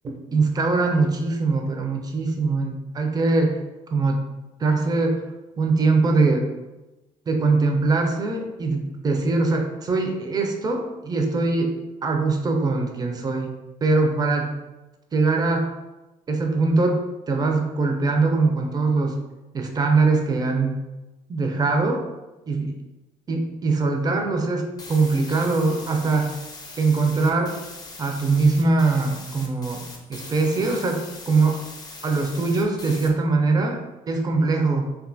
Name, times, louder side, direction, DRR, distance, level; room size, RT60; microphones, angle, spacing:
voice 1, 0.0-3.6 3.9-4.2 4.6-5.2 5.6-6.5 7.3-11.7 12.0-13.5 13.8-14.5 15.1-15.7 16.3-17.0 17.3-19.2 19.5-20.8 21.3-22.0 22.5-22.7 23.3-26.4 26.8-27.5 28.0-29.8 30.1-31.6 32.0-34.9, right 3 dB, 25° right, 3 dB, 0.4 m, -22 dB
sound 1, 24.8-33.1, left 3 dB, 25° left, 0.5 m, -41 dB
2.5 x 2.3 x 2.5 m, 1.0 s
cardioid pair, 85°, 15 cm